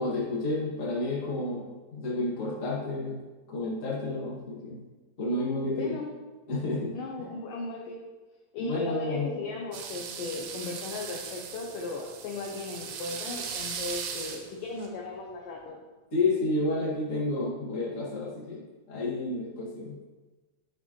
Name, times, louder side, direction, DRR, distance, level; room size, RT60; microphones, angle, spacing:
voice 1, 0.0-3.2 3.5-4.8 5.2-6.0 6.5-7.0 8.6-9.3 16.1-20.0, left 2 dB, 35° left, -6 dB, 1.2 m, -30 dB
voice 2, 5.8-6.1 6.9-8.0 8.5-15.8, left 3 dB, 80° left, -1 dB, 1.9 m, -37 dB
sound 1, 9.7-14.9, right 6 dB, 80° right, 3.0 m, -38 dB
11.5 x 5.8 x 3.1 m, 1.2 s
omnidirectional pair, 4.9 m